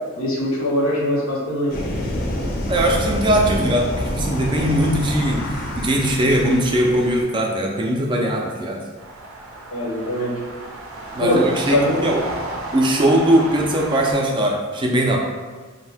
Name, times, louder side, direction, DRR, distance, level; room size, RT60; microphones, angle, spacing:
voice 1, 0.2-1.8 9.7-10.3 11.2-11.9, left 1 dB, 90° left, -4 dB, 0.8 m, -21 dB
sound 1, 1.7-7.2, left 1 dB, 45° left, 0.5 m, -27 dB
voice 2, 2.7-8.9 11.2-12.2 12.7-15.2, right 1 dB, 25° right, 0 dB, 0.3 m, -20 dB
sound 2, 9.0-14.1, right 1 dB, 85° right, 0.5 m, -33 dB
2.6 x 2.1 x 3.4 m, 1.4 s
head